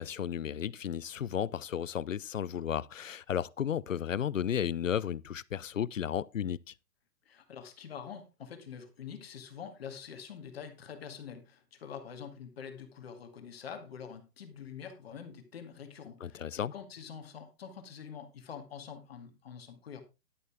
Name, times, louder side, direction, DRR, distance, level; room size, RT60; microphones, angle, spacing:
voice 1, 0.0-6.7 16.2-16.7, left 9 dB, 55° left, 0.5 m, -33 dB
voice 2, 7.3-20.0, left 7 dB, 35° left, 2.1 m, -46 dB
11.0 x 11.0 x 3.4 m
hypercardioid pair, 180°, 49 cm